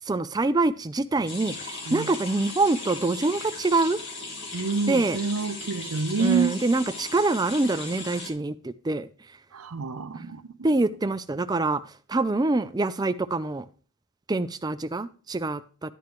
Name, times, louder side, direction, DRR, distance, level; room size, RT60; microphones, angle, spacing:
voice 1, 0.1-4.0 4.9-5.2 6.2-9.1 10.1-10.3 10.6-11.8 12.1-13.7 14.3-15.9, right 2 dB, 20° right, 0.4 m, -25 dB
sound 1, 1.3-8.3, left 3 dB, 55° left, 2.0 m, -37 dB
voice 2, 4.5-6.5 9.5-10.4, right 5 dB, 80° right, 0.6 m, -27 dB
11.5 x 8.6 x 3.1 m
head